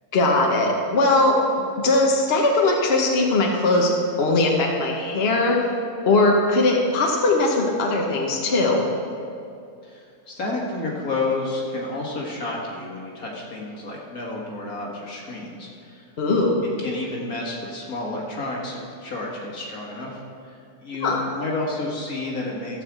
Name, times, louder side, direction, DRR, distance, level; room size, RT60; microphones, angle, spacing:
voice 1, 0.1-1.4 1.8-3.9 4.2-5.6 6.0-8.9 16.2-16.6 21.0-21.2, left 2 dB, 45° left, 0 dB, 1.2 m, -20 dB
voice 2, 9.8-16.0 16.8-22.8, left 2 dB, 80° left, -3 dB, 2.3 m, -31 dB
14.5 x 4.9 x 7.3 m, 2.5 s
omnidirectional pair, 1.5 m